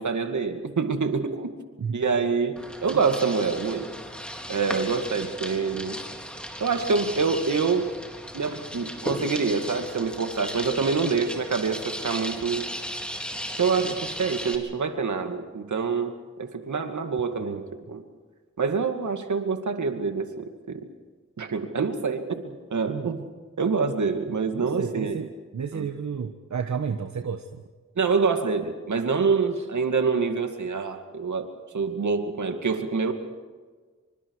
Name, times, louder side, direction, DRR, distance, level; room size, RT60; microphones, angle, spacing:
voice 1, 0.0-1.5 1.9-3.9 4.5-6.0 6.6-7.9 8.3-12.7 13.6-16.1 16.4-17.6 17.9-18.0 18.6-20.8 21.4-23.3 23.6-25.2 25.7-25.8 28.0-33.1, right 5 dB, 90° right, 6 dB, 2.4 m, -26 dB
sound 1, 2.6-14.6, equal, 5° left, 3.9 m, -36 dB
voice 2, 24.3-27.6 29.5-29.7, right 6 dB, 75° right, 6 dB, 1.3 m, -32 dB
27.0 x 25.5 x 4.9 m, 1.4 s
wide cardioid pair, 60°, 29 cm